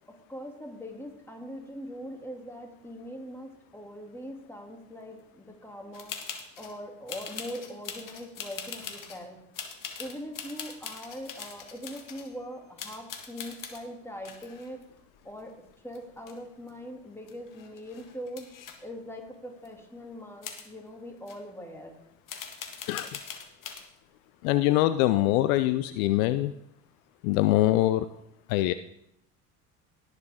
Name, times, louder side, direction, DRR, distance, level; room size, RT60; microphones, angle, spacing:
voice 1, 0.1-6.2 6.6-9.4 10.0-14.8 15.2-18.5 18.8-22.0, equal, 5° left, 2 dB, 2.6 m, -42 dB
sound 1, 5.9-6.8 7.1-9.2 9.5-12.3 12.8-13.8 14.3-15.7 15.9-16.7 17.0-17.1 17.3-18.8 19.7-19.8 20.4-20.7 21.3-21.4 22.3-23.8, left 7 dB, 45° left, 1.7 m, -41 dB
voice 2, 22.9-23.2 24.4-26.5 27.2-28.1 28.5-28.7, left 15 dB, 70° left, 13 dB, 0.6 m, -23 dB
18.0 x 6.6 x 3.6 m, 0.78 s
hypercardioid pair, 65°, 43 cm